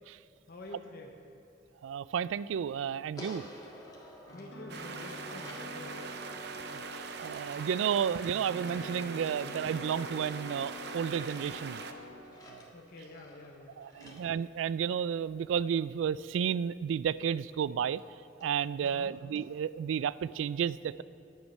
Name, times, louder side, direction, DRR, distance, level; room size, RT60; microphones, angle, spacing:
voice 1, 0.5-1.1 4.3-6.0 12.7-14.2 18.8-19.2, left 1 dB, 50° left, 0 dB, 0.9 m, -48 dB
voice 2, 1.8-3.4 6.7-6.8 7.2-11.8 12.5-12.7 13.8-18.0 18.4-21.0, right 8 dB, 85° right, 18 dB, 0.3 m, -32 dB
sound 1, 3.2-5.7 9.3-10.7 11.1-15.3 17.2-17.3 17.5-17.6 18.0-18.1 18.4-18.5 18.9-19.0 19.3-19.5, left 1 dB, 20° left, 1.8 m, -52 dB
sound 2, 4.3-12.2, left 1 dB, 75° left, 1.8 m, -46 dB
sound 3, 4.7-11.9, right 5 dB, 60° right, 0.7 m, -42 dB
10.0 x 9.7 x 5.5 m, 2.9 s
head